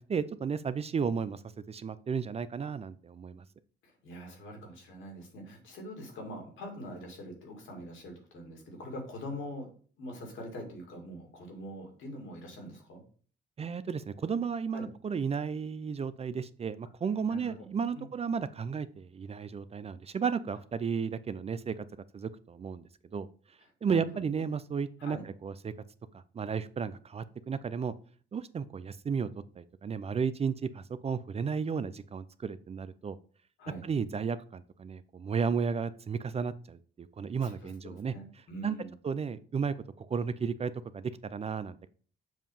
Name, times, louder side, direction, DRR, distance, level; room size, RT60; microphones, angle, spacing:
voice 1, 0.0-1.4 1.7-3.5 13.6-21.9 22.1-22.8 23.1-23.3 23.8-25.7 26.1-27.9 28.3-29.3 29.6-33.2 33.8-38.1 38.6-38.7 39.0-41.9, right 6 dB, 30° right, 14 dB, 0.4 m, -33 dB
voice 2, 3.8-9.7 10.0-13.0 14.7-14.9 17.3-17.7 17.9-18.0 23.9-24.0 25.0-25.2 33.6-33.8 37.4-38.9, equal, 80° left, 1 dB, 2.4 m, -43 dB
7.2 x 2.8 x 5.4 m, 0.43 s
cardioid pair, 90°, 20 cm